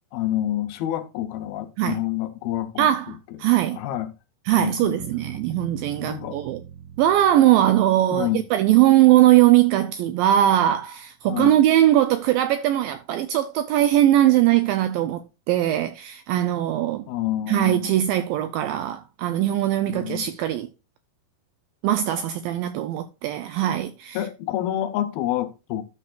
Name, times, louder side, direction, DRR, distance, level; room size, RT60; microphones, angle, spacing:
voice 1, 0.1-2.9 3.7-4.1 4.6-5.0 6.0-6.4 8.1-8.4 11.3-11.5 17.1-18.0 19.9-20.3 24.1-25.8, left 12 dB, 75° left, 2.6 m, -28 dB
voice 2, 2.8-3.8 4.5-6.6 7.0-17.1 17.5-20.7 21.8-24.2, right 13 dB, 85° right, 2.0 m, -20 dB
sound 1, 5.0-9.0, right 8 dB, 70° right, 3.2 m, -41 dB
12.5 x 6.6 x 2.4 m
omnidirectional pair, 4.5 m